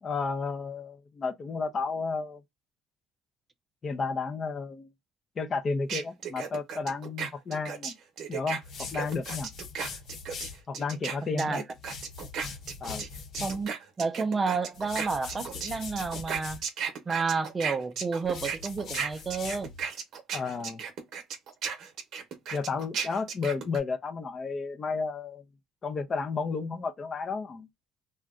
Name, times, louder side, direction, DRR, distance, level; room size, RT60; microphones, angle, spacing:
voice 1, 0.0-2.4 3.8-4.9 5.4-8.0 8.3-9.5 10.7-11.6 12.8-13.1 20.3-20.8 22.5-25.4 25.8-27.7, left 4 dB, 35° left, 0.5 m, -32 dB
sound 1, 5.9-13.1 13.3-23.8, right 7 dB, 55° right, 0.8 m, -35 dB
sound 2, 8.6-10.6 11.7-13.7 14.7-16.6 18.2-19.8, left 5 dB, 60° left, 0.9 m, -41 dB
voice 2, 13.4-16.6 17.1-19.7, right 4 dB, 25° right, 0.4 m, -30 dB
2.5 x 2.1 x 3.5 m
cardioid pair, 105°, 0 cm